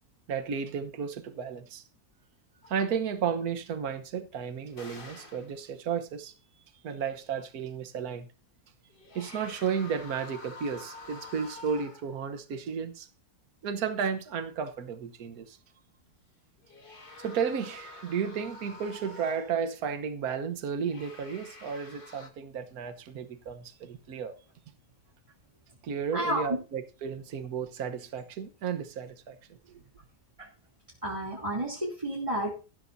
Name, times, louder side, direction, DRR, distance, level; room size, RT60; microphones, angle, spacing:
voice 1, 0.3-1.8 2.7-6.3 6.8-8.3 9.1-13.1 13.6-15.6 17.2-24.4 25.8-29.4 29.7-29.8, right 7 dB, 70° right, 1.5 m, -33 dB
sound 1, 2.6-2.9 4.7-5.6 8.9-12.2 16.6-19.7 20.7-22.3, left 3 dB, 35° left, 2.0 m, -48 dB
voice 2, 26.1-26.6 30.4-30.5 31.0-32.7, right 1 dB, 20° right, 3.1 m, -31 dB
15.0 x 12.5 x 2.7 m
omnidirectional pair, 1.7 m